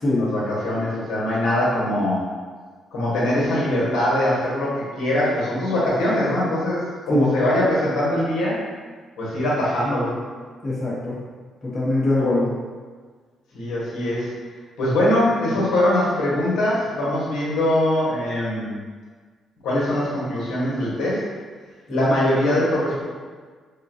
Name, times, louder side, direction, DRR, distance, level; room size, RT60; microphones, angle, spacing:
voice 1, 0.2-2.2 2.9-8.6 9.2-10.1 13.5-14.3 14.8-18.8 19.6-21.2 21.9-23.0, left 1 dB, 90° left, -7 dB, 1.1 m, -22 dB
voice 2, 10.6-11.1 11.6-12.5 21.9-22.1, left 1 dB, 30° left, -9 dB, 0.9 m, -22 dB
3.7 x 2.2 x 2.6 m, 1.5 s
cardioid pair, 90°, 0 cm